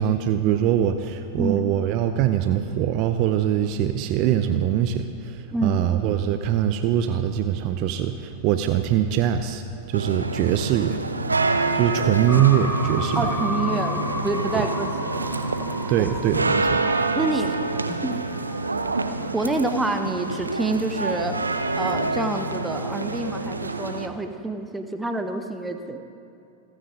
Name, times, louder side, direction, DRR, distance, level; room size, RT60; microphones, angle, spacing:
voice 1, 0.0-9.6 9.9-11.0 11.7-13.2 15.9-16.8, right 10 dB, 40° right, 9 dB, 0.7 m, -22 dB
voice 2, 5.5-5.9 12.4-12.5 13.1-15.3 16.0-16.1 17.1-17.6 17.9-18.2 19.3-26.0, right 2 dB, 10° right, 6 dB, 1.1 m, -27 dB
sound 1, 9.9-24.1, right 3 dB, 80° right, 0.8 m, -27 dB
sound 2, 12.3-18.8, left 1 dB, 5° left, 2.5 m, -33 dB
28.5 x 9.6 x 3.9 m, 2.6 s
figure-of-eight pair, 90°, 0 cm